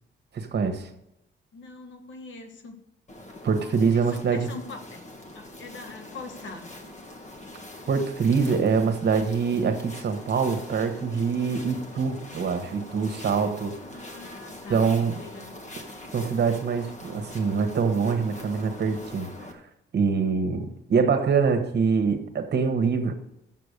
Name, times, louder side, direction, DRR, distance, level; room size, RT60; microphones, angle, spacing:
voice 1, 0.3-0.9 3.4-4.5 7.9-14.2 14.7-15.2 16.1-19.6 19.9-23.1, right 5 dB, 55° right, 7 dB, 1.3 m, -25 dB
voice 2, 1.5-2.8 3.9-5.0 5.3-6.7 13.8-14.9 15.2-15.5, left 3 dB, 70° left, 6 dB, 1.5 m, -42 dB
sound 1, 3.1-19.5, left 1 dB, 35° left, 1.5 m, -43 dB
7.4 x 6.8 x 6.6 m, 0.84 s
cardioid pair, 85°, 21 cm